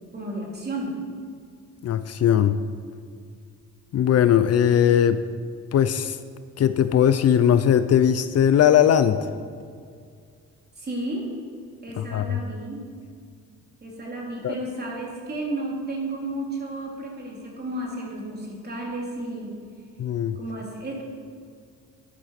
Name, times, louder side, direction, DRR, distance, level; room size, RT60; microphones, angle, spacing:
voice 1, 0.1-0.9 10.8-11.2 11.8-12.8 13.8-19.5 20.4-21.0, right 1 dB, 35° right, -2 dB, 3.8 m, -32 dB
voice 2, 1.8-2.6 3.9-5.2 5.7-6.2 6.6-9.2 12.0-12.4 14.4-14.5 20.0-20.4, left 9 dB, 55° left, 12 dB, 0.6 m, -19 dB
11.5 x 9.1 x 6.0 m, 2.2 s
cardioid pair, 90°, 30 cm